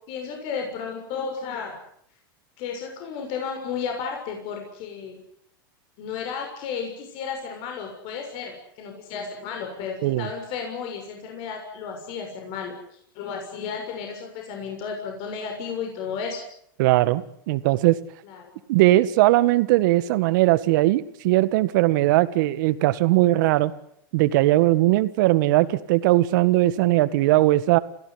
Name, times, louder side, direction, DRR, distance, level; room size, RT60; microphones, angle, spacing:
voice 1, 0.1-1.7 2.6-5.2 6.0-12.7 13.2-16.4 18.2-18.6, left 6 dB, 50° left, 3 dB, 6.8 m, -33 dB
voice 2, 16.8-18.0 18.7-23.7 24.1-27.8, right 17 dB, 60° right, 14 dB, 1.8 m, -19 dB
28.0 x 17.0 x 9.9 m, 0.71 s
hypercardioid pair, 110°, 11 cm